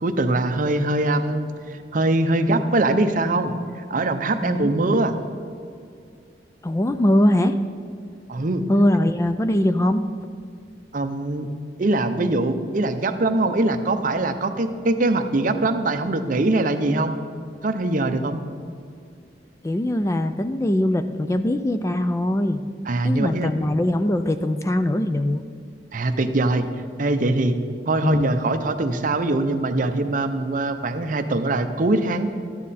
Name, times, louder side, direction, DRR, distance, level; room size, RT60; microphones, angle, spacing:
voice 1, 0.0-1.4 1.7-3.5 3.9-5.1 8.3-8.6 10.9-11.5 11.8-17.1 17.6-18.4 22.9-23.5 25.9-26.7 27.0-27.6 27.9-32.3, right 2 dB, 45° right, 8 dB, 0.7 m, -22 dB
voice 2, 4.4-4.7 6.6-7.6 8.7-10.0 19.6-22.6 23.0-25.4 28.0-28.3, left 1 dB, 15° left, 9 dB, 0.3 m, -21 dB
13.0 x 9.6 x 4.2 m, 2.3 s
head